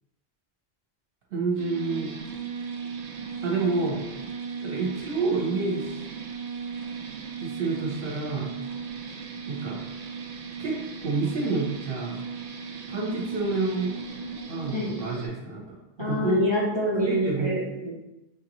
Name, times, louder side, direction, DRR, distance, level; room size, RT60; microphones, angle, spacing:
voice 1, 1.3-2.1 3.4-4.0 4.6-5.9 7.4-8.5 9.5-9.8 10.6-12.2 12.9-13.9 14.5-16.5 17.0-17.5, right 3 dB, 55° right, -2 dB, 0.9 m, -28 dB
sound 1, 1.6-15.3, right 6 dB, 85° right, 0.3 m, -36 dB
voice 2, 16.0-18.0, equal, 30° left, -7 dB, 0.6 m, -26 dB
4.7 x 2.5 x 2.9 m, 0.96 s
omnidirectional pair, 1.3 m